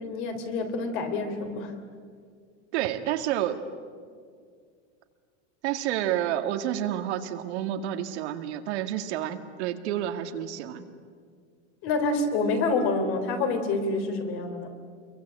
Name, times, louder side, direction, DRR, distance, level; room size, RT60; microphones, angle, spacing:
voice 1, 0.0-1.7 11.8-14.7, left 3 dB, 35° left, 6 dB, 3.4 m, -27 dB
voice 2, 2.7-3.6 5.6-10.9, right 11 dB, 65° right, 6 dB, 2.1 m, -29 dB
28.0 x 23.0 x 8.9 m, 2.1 s
supercardioid pair, 170°, 36 cm